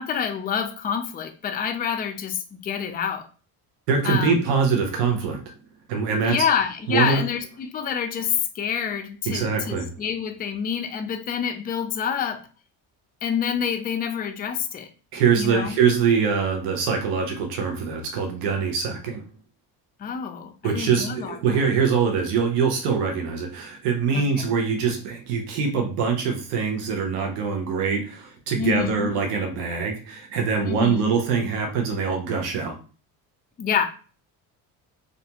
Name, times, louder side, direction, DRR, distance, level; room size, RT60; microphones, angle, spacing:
voice 1, 0.0-3.3 4.0-4.4 6.2-12.4 13.2-14.9 15.4-15.8 20.0-21.6 24.1-24.5 28.6-29.1 30.6-31.2 33.6-33.9, left 7 dB, 20° left, 5 dB, 0.3 m, -27 dB
voice 2, 3.9-5.5 5.9-6.4 6.9-7.2 9.3-9.9 15.1-19.2 20.6-32.8, right 6 dB, 85° right, 2 dB, 0.8 m, -23 dB
2.5 x 2.2 x 2.8 m, 0.36 s
supercardioid pair, 70°, 47 cm